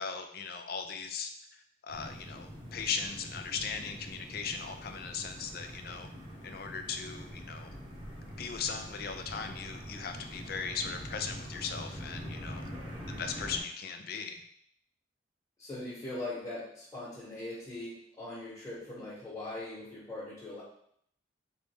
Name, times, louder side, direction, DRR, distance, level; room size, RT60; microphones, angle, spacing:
voice 1, 0.0-6.1 6.4-7.7 8.3-12.7 13.1-14.4, left 6 dB, 50° left, 6 dB, 0.4 m, -38 dB
sound 1, 1.9-13.6, equal, 25° right, 0.8 m, -44 dB
voice 2, 12.7-13.0 15.6-20.6, left 2 dB, 15° left, -9 dB, 1.2 m, -41 dB
3.9 x 3.4 x 3.4 m, 0.68 s
head